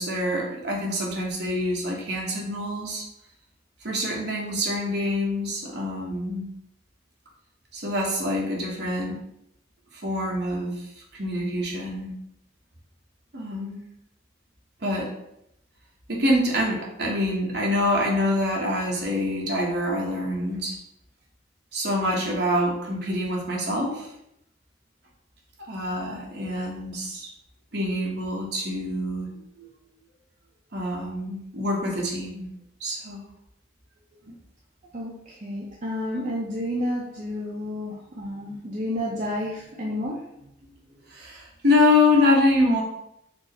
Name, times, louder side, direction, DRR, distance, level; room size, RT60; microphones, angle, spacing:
voice 1, 0.0-3.0 3.8-6.5 7.7-9.2 9.9-10.9 11.1-12.1 13.3-13.8 14.8-15.1 16.1-20.7 21.7-24.1 25.6-27.3 27.7-29.7 30.7-32.5 32.8-33.2 41.1-42.8, left 1 dB, 55° right, -2 dB, 1.0 m, -25 dB
voice 2, 34.9-40.9, left 1 dB, 40° right, -5 dB, 0.6 m, -31 dB
4.4 x 2.1 x 4.4 m, 0.79 s
head